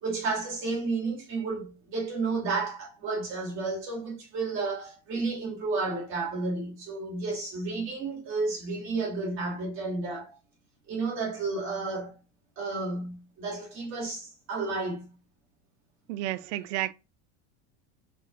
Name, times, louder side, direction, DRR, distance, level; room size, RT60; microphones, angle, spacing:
voice 1, 0.0-10.3 10.9-12.1 12.6-15.1, right 3 dB, 35° right, 1.8 m, -32 dB
voice 2, 16.1-16.9, right 14 dB, 75° right, 0.5 m, -31 dB
3.8 x 2.4 x 4.6 m
supercardioid pair, 165°, 36 cm